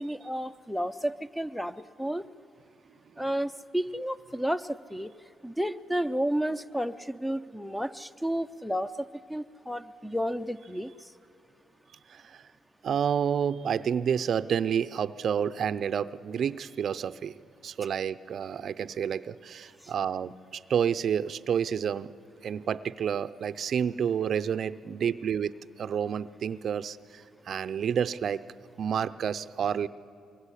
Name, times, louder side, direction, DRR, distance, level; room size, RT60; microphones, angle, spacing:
voice 1, 0.0-2.3 3.2-5.1 5.4-11.1 19.8-19.9, equal, ahead, 12 dB, 0.7 m, -32 dB
voice 2, 12.1-12.4 12.8-17.3 17.6-22.1 22.4-28.4 28.8-29.9, right 8 dB, 60° right, 13 dB, 0.6 m, -29 dB
23.0 x 23.0 x 9.9 m, 2.6 s
cardioid pair, 90°, 0 cm